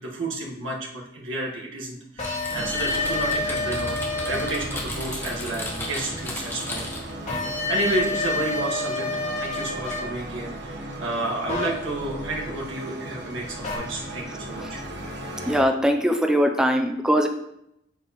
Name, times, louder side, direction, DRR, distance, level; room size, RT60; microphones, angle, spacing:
voice 1, 0.0-6.8 7.3-7.4 7.7-9.1 9.4-14.8, right 2 dB, 80° right, -2 dB, 1.6 m, -31 dB
sound 1, 2.2-4.6 7.3-10.0 11.5-11.7 13.6-13.8, left 3 dB, 35° left, 2.6 m, -28 dB
Typing, 2.2-7.1, left 1 dB, 10° left, 1.3 m, -35 dB
sound 2, 2.5-15.6, right 1 dB, 65° right, 1.3 m, -37 dB
voice 2, 15.4-17.3, equal, 5° right, 4 dB, 0.4 m, -21 dB
7.9 x 6.7 x 3.0 m, 0.80 s
head